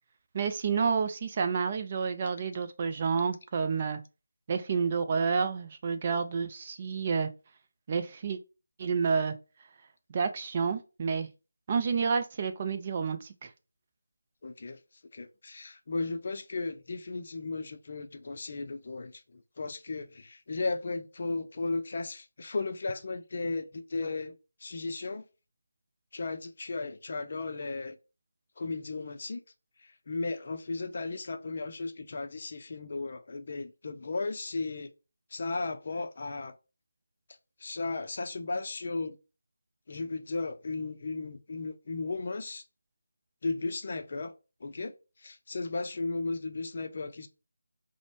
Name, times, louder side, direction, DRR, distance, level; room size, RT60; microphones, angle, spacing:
voice 1, 0.3-4.0 4.5-7.3 7.9-8.4 8.8-9.4 10.1-11.3 11.7-13.5, right 5 dB, 30° right, 0.4 m, -29 dB
voice 2, 14.4-14.8 15.1-24.4 24.6-25.2 26.1-28.0 28.6-29.4 29.8-34.9 35.3-36.5 37.6-39.2 39.9-42.6 43.4-44.3 44.6-44.9 45.2-47.3, left 3 dB, 45° left, 0.5 m, -35 dB
5.0 x 2.0 x 3.2 m
figure-of-eight pair, 160°, 0 cm